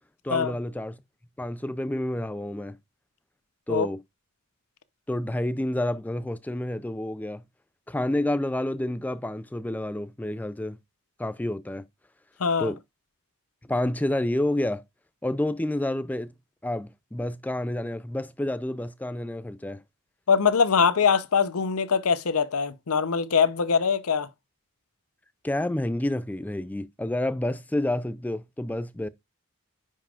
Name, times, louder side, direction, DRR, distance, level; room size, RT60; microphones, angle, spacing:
voice 1, 0.2-1.0 1.4-2.8 3.7-4.0 5.1-7.4 7.9-10.8 11.2-11.8 12.6-12.8 13.7-14.8 15.2-16.3 16.6-19.8 25.4-29.1, left 1 dB, 5° left, 0.3 m, -29 dB
voice 2, 12.4-12.7 20.3-24.3, left 6 dB, 85° left, 0.7 m, -23 dB
9.9 x 5.5 x 2.4 m
head